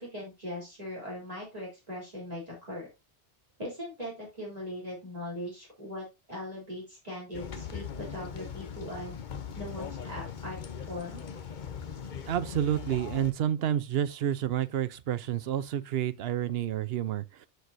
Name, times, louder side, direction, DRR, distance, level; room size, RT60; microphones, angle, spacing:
voice 1, 0.0-2.9 3.6-9.1 9.6-10.6 10.9-11.3, left 1 dB, 35° right, 3.7 m, -40 dB
sound 1, 7.3-13.3, left 7 dB, 50° left, 0.9 m, -40 dB
voice 2, 12.3-17.5, right 10 dB, 65° right, 0.9 m, -29 dB
13.0 x 4.7 x 2.6 m
omnidirectional pair, 1.1 m